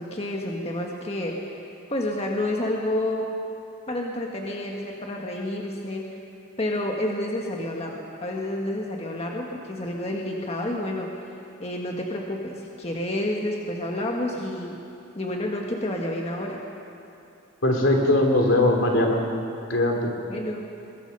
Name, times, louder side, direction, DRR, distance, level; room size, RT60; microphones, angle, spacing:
voice 1, 0.0-1.4 1.9-3.3 3.9-6.2 6.6-11.1 11.6-14.8 15.1-16.6 20.3-20.6, left 1 dB, 30° left, -1 dB, 1.7 m, -29 dB
voice 2, 17.6-19.2 19.7-20.1, left 1 dB, 75° left, 1 dB, 3.2 m, -20 dB
22.5 x 21.0 x 5.6 m, 2.6 s
head